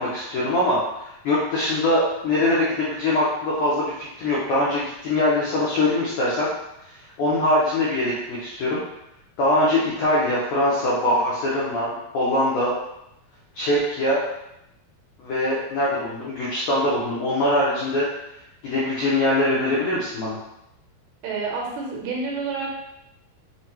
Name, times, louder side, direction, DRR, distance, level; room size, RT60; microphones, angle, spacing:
voice 1, 0.0-6.5 7.2-8.8 9.4-12.7 13.5-14.2 15.2-18.1 18.6-20.4, left 1 dB, 90° left, -7 dB, 1.8 m, -22 dB
voice 2, 21.2-22.7, right 4 dB, 80° right, -2 dB, 2.4 m, -28 dB
6.2 x 2.2 x 2.9 m, 0.83 s
omnidirectional pair, 4.6 m